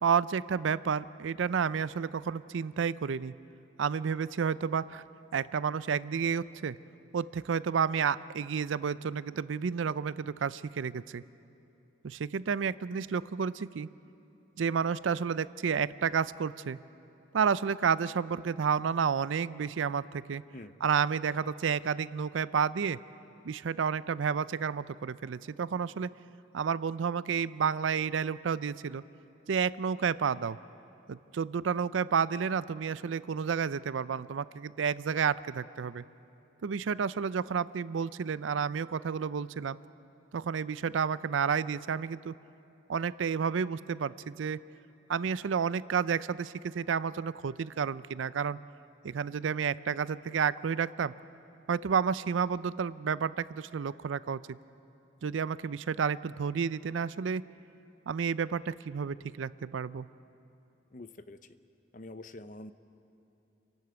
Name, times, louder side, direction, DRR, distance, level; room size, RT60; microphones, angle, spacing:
voice 1, 0.0-3.3 3.8-5.0 5.3-6.8 7.1-11.2 12.0-13.9 14.6-16.8 17.3-20.4 20.8-23.0 23.4-26.1 26.5-29.0 29.5-30.6 31.1-36.0 36.6-39.8 40.3-42.3 42.9-44.6 45.1-48.6 49.0-51.1 51.7-54.6 55.2-57.4 58.1-60.1, right 6 dB, 85° right, 18 dB, 0.4 m, -30 dB
voice 2, 60.9-61.4 61.9-62.7, left 2 dB, 45° left, 12 dB, 0.7 m, -45 dB
29.0 x 12.0 x 8.1 m, 2.9 s
head